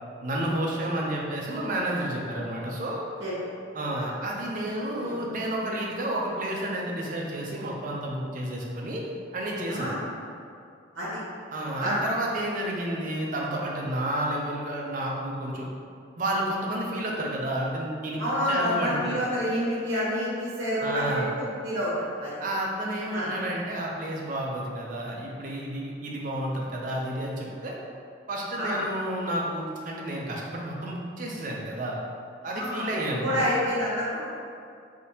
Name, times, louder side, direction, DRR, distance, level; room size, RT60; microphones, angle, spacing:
voice 1, 0.2-3.0 3.7-9.9 11.5-15.7 16.2-18.2 18.5-19.2 20.8-21.3 22.4-27.7 28.3-32.0 32.4-33.6, right 1 dB, 45° right, -2 dB, 0.5 m, -31 dB
voice 2, 9.7-10.0 10.9-11.2 11.8-12.0 18.2-22.4 23.1-23.3 28.6-28.8 32.5-34.3, equal, 60° right, -10 dB, 1.0 m, -29 dB
3.5 x 2.7 x 2.8 m, 2.3 s
head